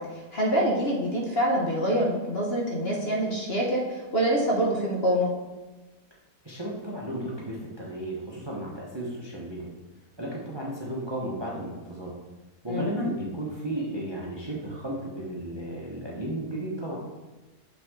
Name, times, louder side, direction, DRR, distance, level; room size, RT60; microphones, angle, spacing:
voice 1, 0.0-5.3 12.7-12.9, right 1 dB, 45° left, -2 dB, 1.2 m, -26 dB
voice 2, 6.4-9.7 10.2-12.1 12.6-17.0, right 1 dB, 20° right, -3 dB, 1.0 m, -34 dB
6.8 x 5.6 x 3.7 m, 1.2 s
omnidirectional pair, 1.7 m